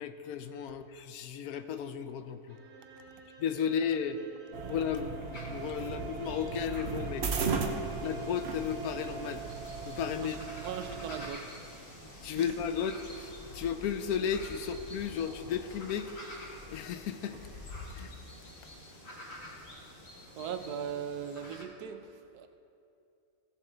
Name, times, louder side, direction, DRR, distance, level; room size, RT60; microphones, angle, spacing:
voice 1, 0.0-2.6 3.4-4.2 4.7-7.2 8.0-9.4 9.9-10.4 12.2-16.1 16.7-17.4 17.9-18.1, left 7 dB, 75° left, 9 dB, 1.0 m, -34 dB
sound 1, 2.5-9.7, right 1 dB, 65° right, 1.8 m, -50 dB
sound 2, 4.5-11.3, right 5 dB, 50° right, 0.9 m, -37 dB
sound 3, 5.3-21.6, left 1 dB, 45° left, 1.8 m, -48 dB
voice 2, 10.2-11.5 12.3-12.5 20.4-22.5, right 8 dB, 85° right, 8 dB, 1.2 m, -39 dB
16.0 x 7.2 x 3.9 m, 2.6 s
omnidirectional pair, 1.6 m